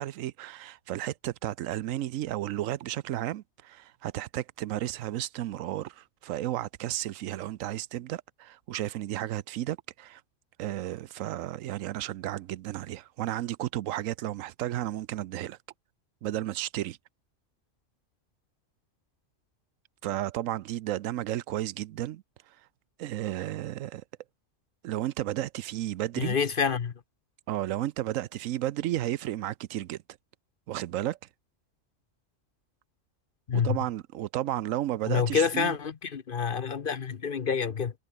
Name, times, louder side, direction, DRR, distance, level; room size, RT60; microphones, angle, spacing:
voice 1, 0.0-10.2 10.6-15.6 16.2-17.0 20.0-22.2 23.0-24.0 24.8-26.4 27.5-30.0 30.7-31.2 33.5-35.7, right 13 dB, 80° right, 1.0 m, -33 dB
voice 2, 26.2-26.9 33.5-33.8 35.1-37.9, left 6 dB, 45° left, 0.9 m, -27 dB
omnidirectional pair, 1.3 m